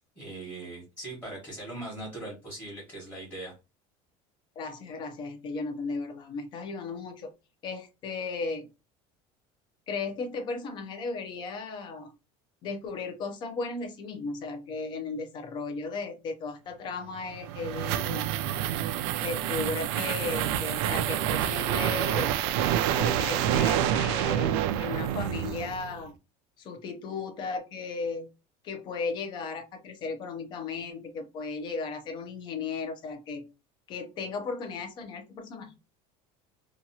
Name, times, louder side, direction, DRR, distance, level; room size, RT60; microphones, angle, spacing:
voice 1, 0.0-3.5, right 2 dB, 15° left, -6 dB, 1.3 m, -40 dB
voice 2, 4.6-7.3 7.6-8.7 9.9-12.1 12.6-18.3 19.2-22.3 22.9-26.1 26.6-28.3 28.6-33.5 33.9-35.7, left 4 dB, 35° left, 6 dB, 0.6 m, -35 dB
noise clip, 17.2-26.0, right 10 dB, 80° right, 0.4 m, -28 dB
2.9 x 2.4 x 2.7 m, 0.28 s
cardioid pair, 175°, 14 cm